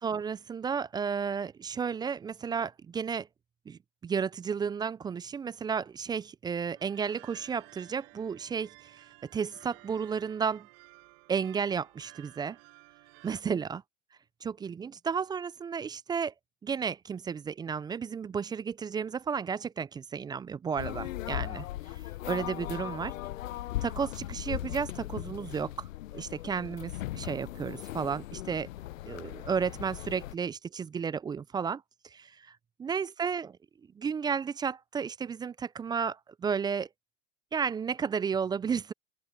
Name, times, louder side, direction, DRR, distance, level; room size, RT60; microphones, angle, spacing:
voice 1, 0.0-3.3 3.7-9.0 9.3-10.7 11.3-12.6 13.2-13.8 14.4-16.3 16.6-21.7 22.3-23.1 23.8-25.9 26.1-28.7 29.1-33.6 34.0-36.9 37.5-38.9, right 6 dB, 10° right, 0.3 m, -33 dB
sound 1, 6.7-13.4, right 35 dB, 60° right, 7.6 m, -55 dB
sound 2, 20.8-30.3, left 15 dB, 75° left, 0.8 m, -38 dB
open air
hypercardioid pair, 90°, 40 cm